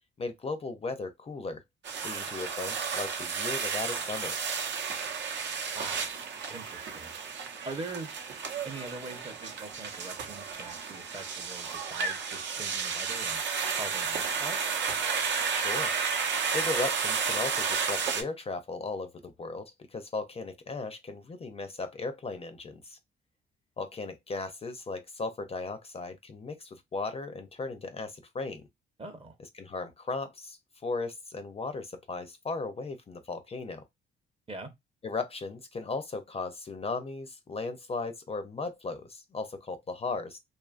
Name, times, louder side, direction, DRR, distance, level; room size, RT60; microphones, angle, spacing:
voice 1, 0.2-1.6 2.0-4.4 15.5-15.9 16.2-23.0 23.8-28.7 29.6-33.8 35.0-40.4, left 3 dB, 30° left, 0.5 m, -36 dB
sound 1, 1.8-18.2, right 5 dB, 65° right, 0.7 m, -32 dB
voice 2, 5.7-6.1 6.5-7.1 7.7-8.1 8.6-13.4 13.7-14.8 29.0-29.4 34.5-34.7, right 3 dB, 30° right, 0.8 m, -42 dB
2.6 x 2.4 x 2.4 m
cardioid pair, 90°, 20 cm